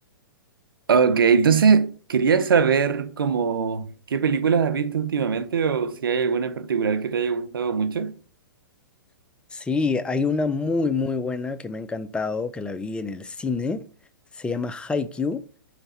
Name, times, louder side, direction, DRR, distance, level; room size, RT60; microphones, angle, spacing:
voice 1, 0.9-8.2, right 6 dB, 80° right, 0.8 m, -21 dB
voice 2, 9.5-13.9 14.3-15.4, left 4 dB, 10° left, 0.5 m, -26 dB
5.9 x 4.0 x 5.5 m
hypercardioid pair, 120°, 11 cm